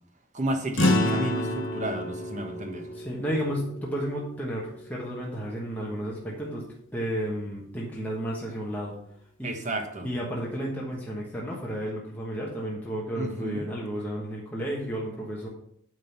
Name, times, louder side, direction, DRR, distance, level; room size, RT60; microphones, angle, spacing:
voice 1, 0.3-2.9 9.4-10.1 13.1-13.6, right 2 dB, 35° right, 5 dB, 1.2 m, -32 dB
sound 1, 0.8-5.4, left 1 dB, 60° left, 1.5 m, -29 dB
voice 2, 2.9-6.6 6.9-8.9 9.4-9.5 10.0-15.5, equal, 5° left, -4 dB, 1.2 m, -32 dB
9.1 x 3.9 x 7.0 m, 0.70 s
head